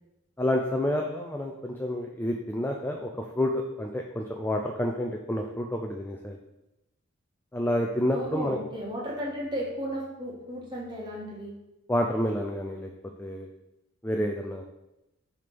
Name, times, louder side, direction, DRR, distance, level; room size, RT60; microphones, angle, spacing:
voice 1, 0.4-3.1 3.4-6.4 7.5-8.6 11.9-12.9 13.2-13.5 14.0-14.6, left 1 dB, 10° left, 2 dB, 0.4 m, -29 dB
voice 2, 8.1-11.5, equal, 20° right, -4 dB, 1.7 m, -34 dB
6.4 x 3.5 x 5.9 m, 0.94 s
head